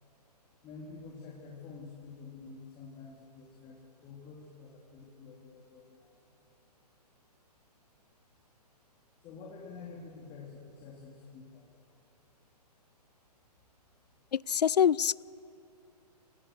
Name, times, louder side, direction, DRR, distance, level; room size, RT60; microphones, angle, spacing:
voice 1, 0.6-6.1 9.2-11.7, left 4 dB, 25° left, -2 dB, 3.3 m, -48 dB
voice 2, 14.3-15.2, left 8 dB, 75° left, 25 dB, 0.5 m, -25 dB
27.5 x 17.5 x 7.9 m, 2.6 s
hypercardioid pair, 130°, 21 cm